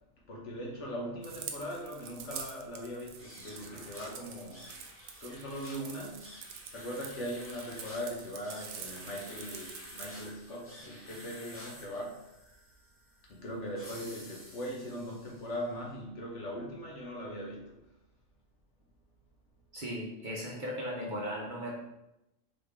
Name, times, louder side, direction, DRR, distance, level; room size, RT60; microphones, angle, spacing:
voice 1, 0.3-4.7 5.2-6.5 6.7-12.3 13.3-17.8, equal, 65° left, -2 dB, 1.2 m, -40 dB
sound 1, 1.2-10.1, right 7 dB, 80° right, 1.0 m, -47 dB
sound 2, 3.1-15.6, equal, 10° left, 0.9 m, -51 dB
voice 2, 19.7-21.7, equal, 45° right, -4 dB, 0.8 m, -37 dB
4.0 x 3.3 x 3.4 m, 0.91 s
omnidirectional pair, 1.4 m